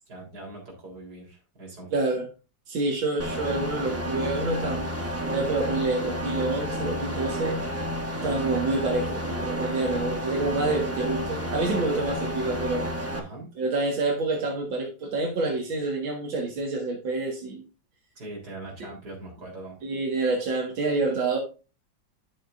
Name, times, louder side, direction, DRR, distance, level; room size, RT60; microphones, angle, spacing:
voice 1, 0.1-1.9 8.1-8.3 13.1-13.5 18.2-19.8 21.0-21.1, right 2 dB, 55° right, -1 dB, 4.3 m, -41 dB
voice 2, 1.9-2.3 2.7-7.6 8.2-12.9 13.6-17.6 19.8-21.4, right 2 dB, 85° right, 0 dB, 2.5 m, -27 dB
sound 1, 3.2-13.2, equal, 10° right, 1.1 m, -31 dB
11.0 x 7.4 x 2.6 m, 0.33 s
omnidirectional pair, 2.1 m